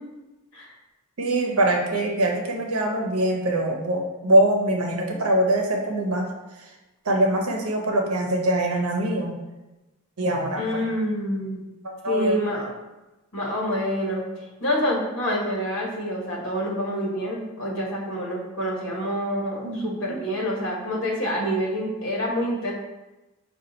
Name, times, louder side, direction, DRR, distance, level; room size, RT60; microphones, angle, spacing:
voice 1, 1.2-6.3 7.0-9.3 10.2-10.8 11.8-12.4 19.6-20.2, right 1 dB, 80° right, 1 dB, 0.8 m, -23 dB
voice 2, 10.6-11.6 12.0-12.7 13.3-22.7, equal, 65° left, -3 dB, 1.2 m, -27 dB
5.4 x 2.4 x 4.0 m, 1.1 s
head